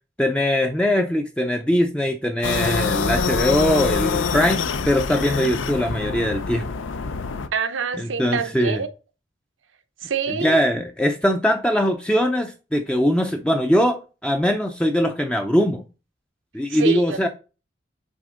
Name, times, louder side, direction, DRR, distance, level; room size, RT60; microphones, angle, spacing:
voice 1, 0.2-6.6 8.0-8.8 10.4-15.8 16.5-17.3, equal, 5° left, 0.4 m, -21 dB
sound 1, 2.4-7.5, left 5 dB, 85° left, 0.6 m, -25 dB
voice 2, 7.5-8.9 10.0-10.6 16.7-17.3, right 5 dB, 85° right, 0.7 m, -26 dB
6.2 x 4.2 x 3.7 m
head